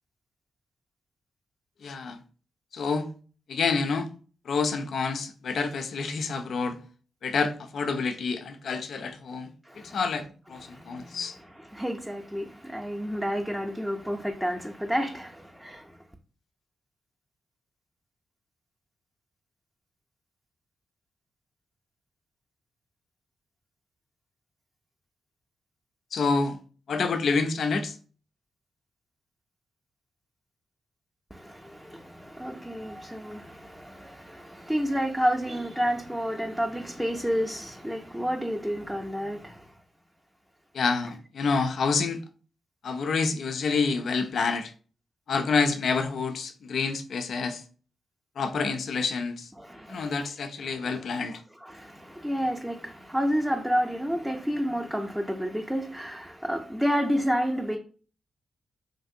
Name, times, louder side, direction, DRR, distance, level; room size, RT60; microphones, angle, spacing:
voice 1, 1.8-2.2 2.7-3.1 3.5-4.1 4.5-6.8 7.2-9.5 9.9-11.4 26.1-26.6 26.9-28.0 40.7-42.2 42.8-44.7 45.3-47.6 48.4-49.5 49.9-51.4, left 4 dB, 70° left, 0.3 m, -28 dB
voice 2, 9.6-10.0 10.6-16.0 31.3-39.7 49.6-51.0 51.6-57.8, equal, 5° right, 0.4 m, -30 dB
3.0 x 2.5 x 2.6 m
cardioid pair, 55°, 0 cm